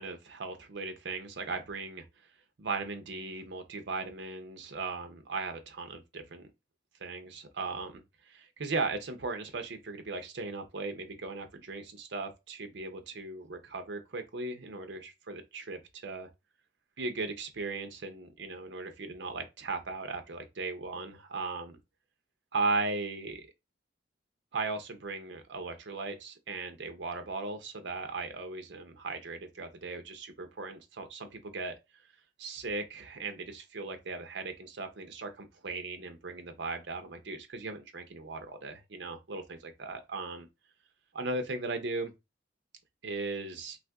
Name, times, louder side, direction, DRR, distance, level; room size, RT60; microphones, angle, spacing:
voice 1, 0.0-2.0 2.6-6.4 7.0-16.3 17.0-21.8 22.5-23.5 24.5-31.8 32.4-40.5 41.1-42.1 43.0-43.8, right 3 dB, 65° right, 0.6 m, -37 dB
2.6 x 2.5 x 3.4 m
head